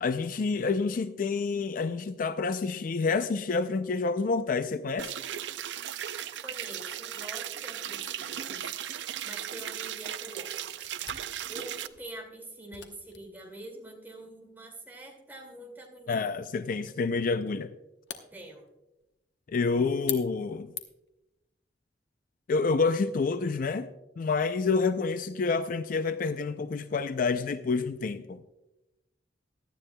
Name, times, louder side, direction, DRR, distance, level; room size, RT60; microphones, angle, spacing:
voice 1, 0.0-5.2 16.1-17.7 19.5-20.7 22.5-23.9 24.2-28.4, left 4 dB, 50° left, 0.4 m, -28 dB
sound 1, 5.0-11.9, right 10 dB, 80° right, 0.4 m, -37 dB
voice 2, 6.4-8.7 9.1-11.0 11.5-16.3 18.3-18.6, right 1 dB, 10° right, 2.2 m, -45 dB
Camera, 9.6-21.2, left 9 dB, 75° left, 1.0 m, -46 dB
17.5 x 12.0 x 2.2 m
head